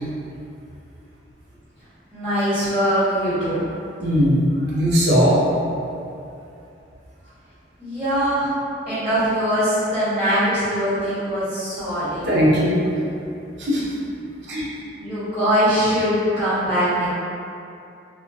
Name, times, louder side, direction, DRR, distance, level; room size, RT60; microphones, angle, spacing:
voice 1, 2.1-3.6 7.8-8.5 8.9-12.2 15.0-17.1, equal, 5° right, -17 dB, 1.3 m, -22 dB
voice 2, 4.0-4.5 4.7-5.4 12.2-12.8 13.6-13.9 14.5-14.7, equal, 65° right, -8 dB, 0.6 m, -18 dB
2.2 x 2.2 x 2.5 m, 2.6 s
head